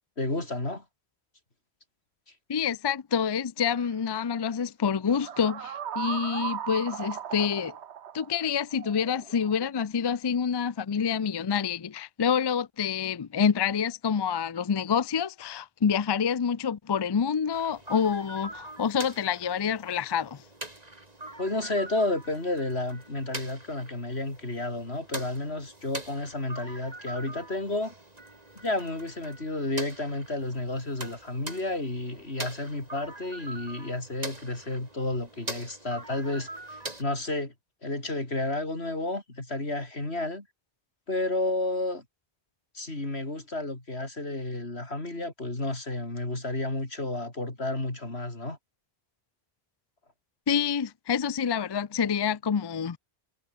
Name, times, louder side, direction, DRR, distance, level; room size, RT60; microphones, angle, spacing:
voice 1, 0.2-0.8 21.4-27.9 28.6-37.5 37.8-40.5 41.1-42.0 42.7-48.6, left 2 dB, 75° left, 5.2 m, -31 dB
voice 2, 2.5-7.8 8.1-20.4 50.5-53.0, left 7 dB, 40° left, 0.4 m, -27 dB
sound 1, 3.7-3.9 5.1-9.7, right 9 dB, 90° right, 1.2 m, -37 dB
sound 2, 17.5-37.0, right 2 dB, 35° right, 3.4 m, -43 dB
omnidirectional pair, 1.1 m